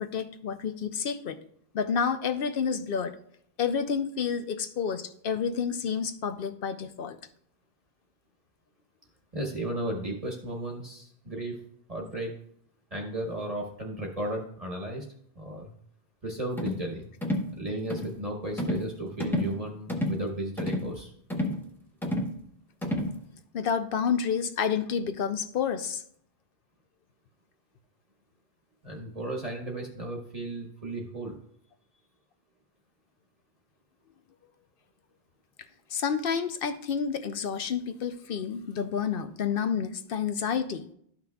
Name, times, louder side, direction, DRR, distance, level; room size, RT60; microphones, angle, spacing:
voice 1, 0.0-1.4 1.7-3.2 3.6-7.2 23.5-26.0 35.9-40.9, left 6 dB, 65° left, 10 dB, 0.7 m, -29 dB
voice 2, 9.3-11.6 11.9-12.3 12.9-15.0 15.3-15.6 16.2-17.1 17.5-21.1 28.8-31.4, right 1 dB, 35° right, 0 dB, 1.1 m, -34 dB
sound 1, 16.6-16.8 17.2-17.5 17.9-18.1 18.6-18.9 19.2-19.6 19.9-20.2 20.6-20.9 21.3-21.6 22.0-22.3 22.8-23.1, left 1 dB, ahead, 0.9 m, -30 dB
12.0 x 5.8 x 2.3 m, 0.66 s
omnidirectional pair, 1.1 m